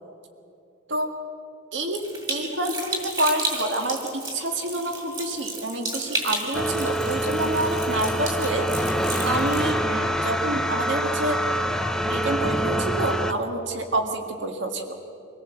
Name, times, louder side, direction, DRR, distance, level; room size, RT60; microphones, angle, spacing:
voice 1, 1.7-8.7 9.2-11.4 12.0-15.0, right 1 dB, 65° right, 4 dB, 1.9 m, -28 dB
sound 1, 1.9-9.7, right 2 dB, 20° right, 3.8 m, -33 dB
sound 2, 6.5-13.3, equal, ahead, 0.7 m, -25 dB
25.0 x 17.0 x 7.8 m, 2.8 s
head